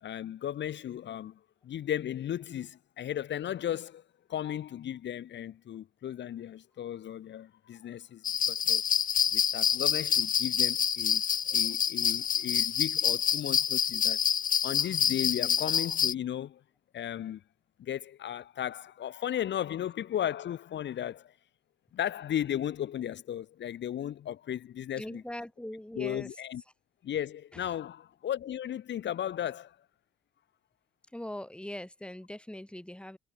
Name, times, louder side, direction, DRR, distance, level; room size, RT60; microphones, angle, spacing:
voice 1, 0.0-4.0 4.3-8.8 9.3-14.2 14.6-16.6 16.9-17.4 17.8-21.3 21.9-25.2 26.0-26.6 27.0-29.8, left 10 dB, 65° left, 1.7 m, -35 dB
sound 1, 8.2-16.1, left 8 dB, 45° left, 0.9 m, -27 dB
voice 2, 25.0-26.4 27.5-27.7 31.1-33.2, left 1 dB, 5° left, 3.8 m, -41 dB
cardioid pair, 90°, 20 cm